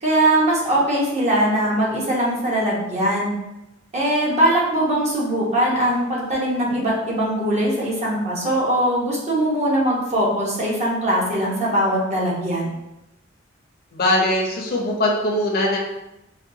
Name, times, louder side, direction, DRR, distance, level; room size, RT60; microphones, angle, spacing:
voice 1, 0.0-3.3 3.9-12.7, right 1 dB, 35° right, -5 dB, 0.9 m, -21 dB
voice 2, 13.9-15.8, left 1 dB, 50° left, 0 dB, 0.6 m, -21 dB
4.5 x 2.3 x 2.7 m, 0.93 s
head